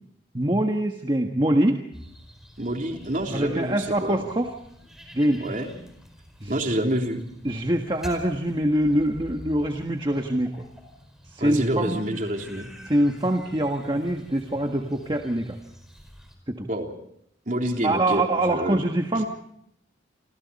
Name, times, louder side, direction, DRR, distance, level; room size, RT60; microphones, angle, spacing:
voice 1, 0.3-1.8 3.3-4.5 5.1-5.4 6.4-6.5 7.4-10.6 11.3-12.0 12.8-15.6 16.5-16.7 17.8-19.3, right 1 dB, 25° right, 3 dB, 1.5 m, -24 dB
sound 1, 1.9-16.4, equal, ahead, 4.9 m, -47 dB
voice 2, 2.6-4.2 5.4-5.7 6.5-7.2 11.4-12.7 16.7-16.9 17.4-18.8, right 1 dB, 45° right, 2 dB, 3.5 m, -27 dB
29.0 x 26.5 x 4.2 m, 0.72 s
head